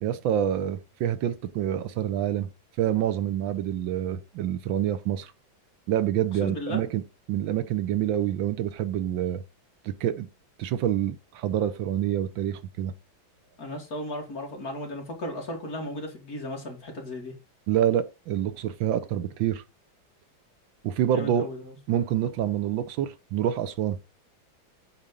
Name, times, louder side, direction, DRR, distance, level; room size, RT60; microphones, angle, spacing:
voice 1, 0.0-2.5 2.8-5.3 5.9-7.0 7.3-9.4 9.8-10.3 10.6-12.9 17.7-19.6 20.8-21.5 21.9-24.0, right 10 dB, 75° right, 1.5 m, -27 dB
voice 2, 6.4-6.8 13.6-17.3 21.0-21.8, left 1 dB, 45° left, 2.9 m, -35 dB
9.0 x 4.3 x 5.3 m
omnidirectional pair, 2.2 m